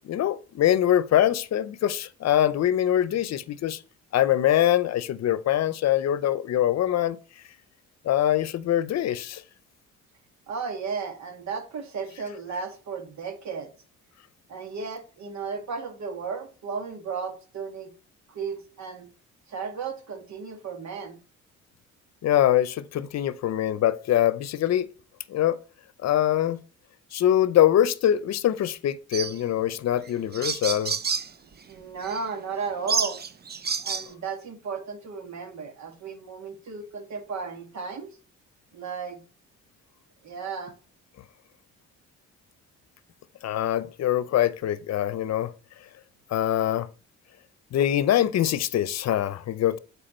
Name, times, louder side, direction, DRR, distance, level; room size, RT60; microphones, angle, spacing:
voice 1, 0.0-3.8 4.1-7.2 8.0-9.4 22.2-24.9 25.3-25.6 26.0-26.6 27.1-30.9 43.4-45.5 46.3-46.9 47.7-49.8, left 11 dB, 60° left, 0.7 m, -23 dB
voice 2, 10.5-13.7 14.5-17.9 18.3-19.1 19.5-21.2 31.7-33.2 33.8-38.1 38.7-39.2 40.2-40.7, right 5 dB, 65° right, 1.8 m, -34 dB
sound 1, 29.1-29.4 30.0-30.1 30.3-31.3 32.0-32.2 32.9-34.1, right 6 dB, 35° right, 0.7 m, -28 dB
7.7 x 4.8 x 4.4 m
cardioid pair, 90°, 30 cm